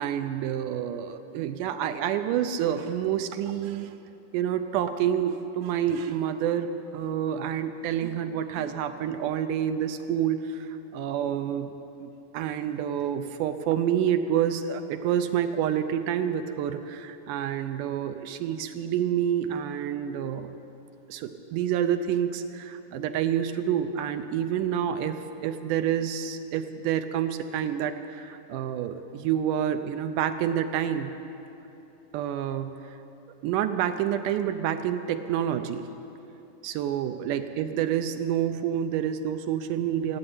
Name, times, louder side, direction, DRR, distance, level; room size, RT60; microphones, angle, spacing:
voice 1, 0.0-3.9 4.3-11.7 12.0-20.5 21.1-31.1 32.1-33.0 33.4-35.9 36.6-40.2, right 9 dB, 80° right, 9 dB, 2.1 m, -28 dB
15.0 x 8.7 x 9.6 m, 2.9 s
omnidirectional pair, 3.8 m